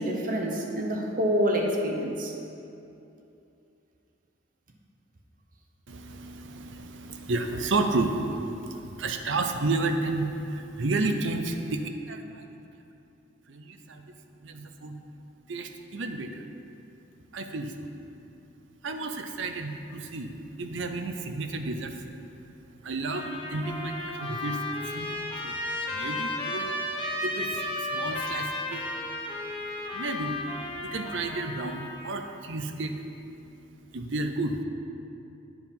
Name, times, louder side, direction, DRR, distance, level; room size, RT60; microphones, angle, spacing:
voice 1, 0.0-2.3, equal, 45° right, 0 dB, 0.9 m, -27 dB
voice 2, 5.9-12.6 13.5-14.0 14.4-15.0 15.5-16.4 17.3-17.7 18.8-22.0 22.8-26.8 27.2-28.8 29.9-30.4 30.8-33.0 33.9-34.6, right 2 dB, 70° right, 6 dB, 0.6 m, -32 dB
Trumpet, 23.0-32.2, left 1 dB, 25° left, 0.8 m, -34 dB
9.7 x 4.8 x 5.3 m, 2.8 s
head